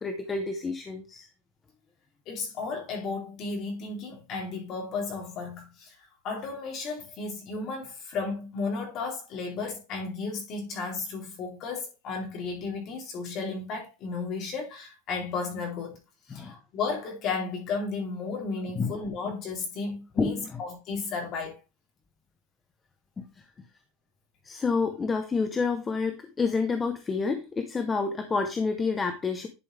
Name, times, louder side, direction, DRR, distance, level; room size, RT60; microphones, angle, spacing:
voice 1, 0.0-1.3 16.3-16.5 18.8-18.9 20.2-20.6 24.4-29.5, left 4 dB, 15° left, 0.7 m, -28 dB
voice 2, 2.3-5.9 6.2-16.0 16.3-21.6, left 4 dB, 30° left, 3.2 m, -34 dB
10.5 x 5.3 x 3.3 m
supercardioid pair, 175°, 0 cm